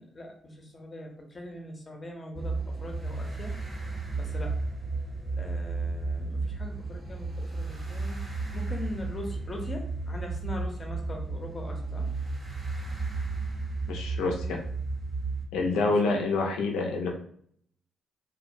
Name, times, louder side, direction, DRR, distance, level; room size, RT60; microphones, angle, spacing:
voice 1, 0.0-3.6 4.2-4.6 5.4-12.1 15.7-16.1, left 1 dB, 30° left, 2 dB, 0.6 m, -41 dB
sound 1, 2.3-15.5, right 3 dB, 20° right, 0.5 m, -33 dB
voice 2, 13.9-14.6 15.5-17.1, left 3 dB, 90° left, 1 dB, 0.5 m, -27 dB
2.4 x 2.1 x 2.5 m, 0.63 s
cardioid pair, 90°, 0 cm